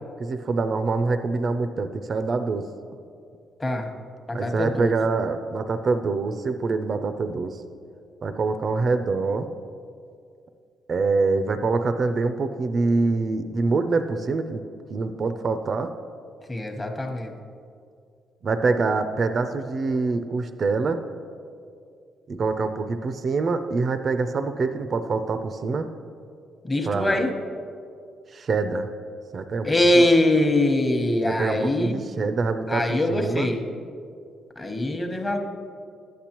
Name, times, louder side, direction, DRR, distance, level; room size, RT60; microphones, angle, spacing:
voice 1, 0.2-2.6 4.3-7.6 8.2-9.5 10.9-14.6 14.9-15.9 18.4-21.0 22.3-25.9 26.9-27.2 28.3-28.9 29.3-29.7 29.9-30.0 31.2-33.5, right 4 dB, 45° right, 9 dB, 0.4 m, -25 dB
voice 2, 3.6-3.9 4.3-4.9 16.5-17.3 26.6-27.3 29.6-32.0 32.7-33.6 34.6-35.4, left 1 dB, 25° left, 4 dB, 1.0 m, -22 dB
11.5 x 8.4 x 3.0 m, 2.3 s
cardioid pair, 90°, 0 cm